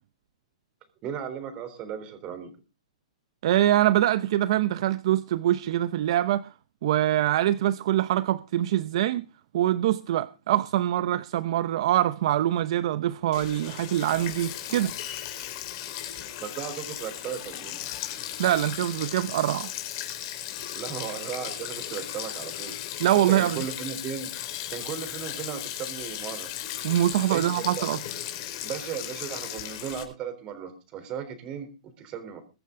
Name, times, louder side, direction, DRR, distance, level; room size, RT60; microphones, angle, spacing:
voice 1, 1.0-2.5 16.4-17.8 20.7-22.7 23.1-24.3 24.7-26.5 27.3-27.9 28.6-32.4, right 8 dB, 25° right, 3.6 m, -36 dB
voice 2, 3.4-6.5 6.8-9.2 9.5-14.9 18.4-19.7 23.0-23.6 26.8-28.0, right 13 dB, 50° right, 0.7 m, -24 dB
Sink (filling or washing), 13.3-30.0, left 11 dB, 35° left, 4.3 m, -36 dB
22.5 x 9.2 x 3.8 m
hypercardioid pair, 160°, 4 cm